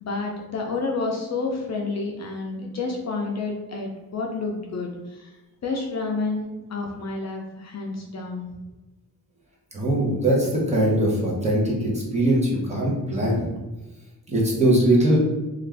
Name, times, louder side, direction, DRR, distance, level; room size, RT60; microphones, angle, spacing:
voice 1, 0.0-5.3 5.6-8.5, left 3 dB, 50° left, 1 dB, 0.5 m, -29 dB
voice 2, 9.7-13.4 14.3-15.2, right 1 dB, 20° right, -4 dB, 0.8 m, -21 dB
2.5 x 2.4 x 3.3 m, 1.1 s
wide cardioid pair, 135°, 35 cm